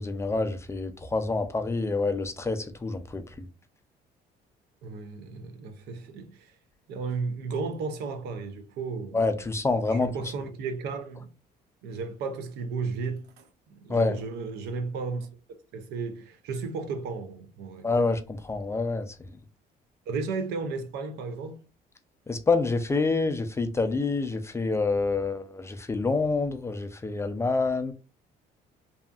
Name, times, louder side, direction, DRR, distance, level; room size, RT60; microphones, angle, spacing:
voice 1, 0.0-3.5 9.1-10.1 13.9-14.2 17.8-19.1 22.3-27.9, left 3 dB, 15° left, 0.3 m, -27 dB
voice 2, 4.8-6.5 6.9-9.2 9.9-11.3 11.8-15.3 15.7-17.9 20.1-21.6, right 4 dB, 80° right, 0.6 m, -34 dB
2.7 x 2.4 x 2.3 m
cardioid pair, 110°, 17 cm